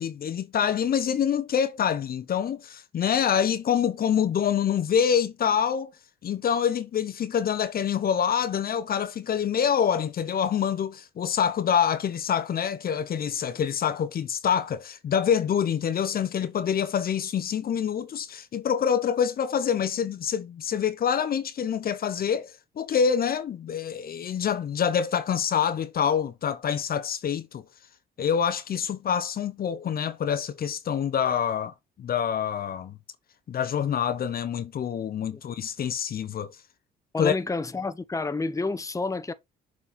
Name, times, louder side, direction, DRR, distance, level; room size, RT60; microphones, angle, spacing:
voice 1, 0.0-5.9 6.2-27.6 28.2-33.0 33.5-36.5 37.2-37.4, left 8 dB, 50° left, 0.8 m, -26 dB
voice 2, 37.1-39.3, left 3 dB, 15° left, 0.9 m, -29 dB
7.1 x 4.2 x 4.1 m
supercardioid pair, 70°, 19 cm